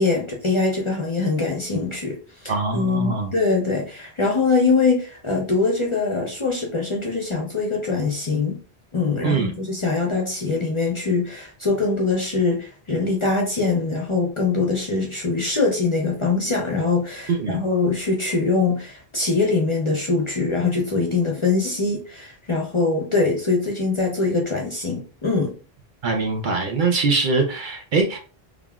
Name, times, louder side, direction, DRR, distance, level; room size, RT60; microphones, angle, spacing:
voice 1, 0.0-8.6 8.9-25.5, left 3 dB, 40° left, -1 dB, 0.5 m, -23 dB
voice 2, 2.5-3.3 9.2-9.5 17.3-17.6 26.0-28.2, right 4 dB, 60° right, 3 dB, 0.6 m, -22 dB
3.2 x 2.4 x 2.2 m, 0.37 s
omnidirectional pair, 1.1 m